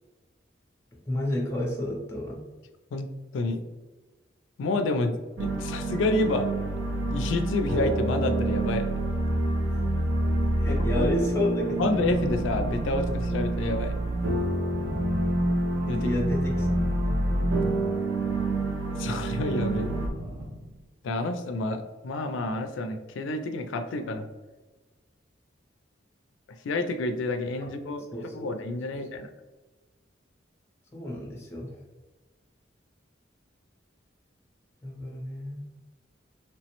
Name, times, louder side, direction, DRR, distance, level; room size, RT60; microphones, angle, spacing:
voice 1, 1.1-2.4 10.6-12.0 15.9-16.7 17.0-17.1 27.6-27.7 28.1-28.5 28.9-29.0 30.9-31.8 34.8-35.7, left 1 dB, 15° left, -1 dB, 0.5 m, -31 dB
voice 2, 4.6-6.5 7.1-8.9 10.7-10.9 11.8-14.0 15.9-16.1 18.9-19.9 21.0-24.3 26.6-28.0 28.3-29.3, left 2 dB, 80° left, 7 dB, 0.4 m, -29 dB
sound 1, 5.4-20.1, right 1 dB, 70° right, 0.4 m, -27 dB
sound 2, 12.0-13.4 14.7-15.7 16.5-18.0 19.3-20.8, equal, 25° right, 0.7 m, -39 dB
3.1 x 2.0 x 2.9 m, 1.2 s
head